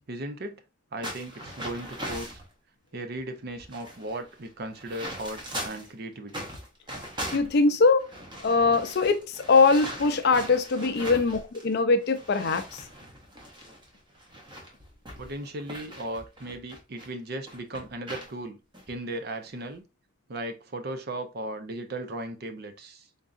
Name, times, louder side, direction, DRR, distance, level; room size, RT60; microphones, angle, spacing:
voice 1, 0.1-0.6 0.9-2.4 2.9-6.5 15.2-18.6 18.9-19.8 20.3-23.1, right 1 dB, 50° right, 0.6 m, -36 dB
sound 1, 1.0-2.4 3.1-3.2 3.5-5.9 6.3-11.7 12.0-17.1 17.5-18.3 18.7-18.9 19.4-19.7, equal, 20° right, 0.8 m, -40 dB
voice 2, 7.3-8.1 8.4-12.8, left 4 dB, 50° left, 0.5 m, -22 dB
3.9 x 3.5 x 2.5 m
head